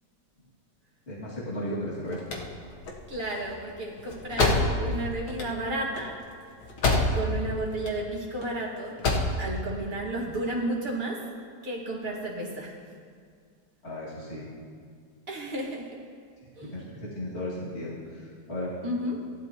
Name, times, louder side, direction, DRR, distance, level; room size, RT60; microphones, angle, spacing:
voice 1, 1.1-2.2 13.8-14.5 16.6-18.7, left 1 dB, 40° left, -7 dB, 2.6 m, -35 dB
sound 1, 1.8-7.4 7.7-8.5 8.8-9.4, left 2 dB, 70° left, 1.7 m, -27 dB
voice 2, 3.1-6.2 7.1-9.1 9.4-11.2 11.6-12.7 15.3-15.9 16.6-16.8 18.8-19.2, right 1 dB, 30° right, -4 dB, 1.9 m, -32 dB
16.0 x 11.5 x 3.0 m, 2.1 s
omnidirectional pair, 1.9 m